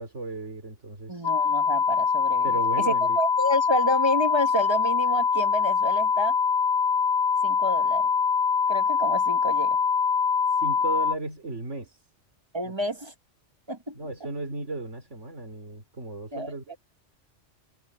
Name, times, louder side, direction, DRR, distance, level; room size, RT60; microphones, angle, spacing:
voice 1, 0.0-1.3 2.4-3.2 10.5-12.0 12.6-12.7 13.9-16.8, right 2 dB, 75° right, 3.8 m, -35 dB
voice 2, 1.1-6.3 7.4-8.1 8.7-9.8 12.5-13.1 13.7-14.0 16.3-16.5, equal, 20° right, 1.6 m, -29 dB
sound 1, 1.2-11.2, left 6 dB, 45° left, 1.0 m, -23 dB
omnidirectional pair, 1.2 m